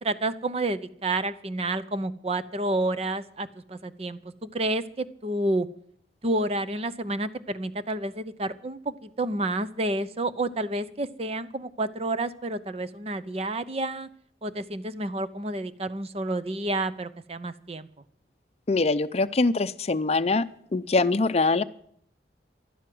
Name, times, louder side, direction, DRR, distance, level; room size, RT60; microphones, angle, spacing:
voice 1, 0.0-5.7 6.2-14.1 14.4-17.9, right 2 dB, 35° right, 12 dB, 0.7 m, -30 dB
voice 2, 18.7-20.4 20.7-21.6, left 3 dB, 35° left, 12 dB, 0.6 m, -23 dB
15.5 x 12.0 x 7.7 m, 0.67 s
head